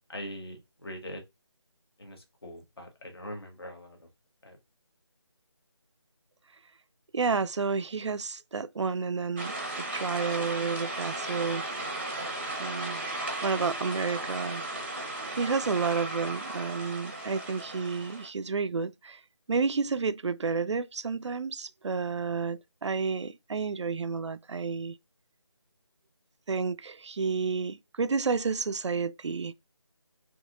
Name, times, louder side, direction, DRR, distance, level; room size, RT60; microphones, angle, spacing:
voice 1, 0.1-1.2 2.0-4.1 4.4-4.6, equal, 55° left, 1.4 m, -42 dB
voice 2, 7.1-11.6 12.6-13.0 13.4-14.6 15.3-19.2 19.5-25.0 26.5-29.5, right 5 dB, 70° right, 0.4 m, -30 dB
sound 1, 9.4-18.3, right 2 dB, 25° right, 0.7 m, -36 dB
5.4 x 2.9 x 2.3 m
figure-of-eight pair, 175°, 15 cm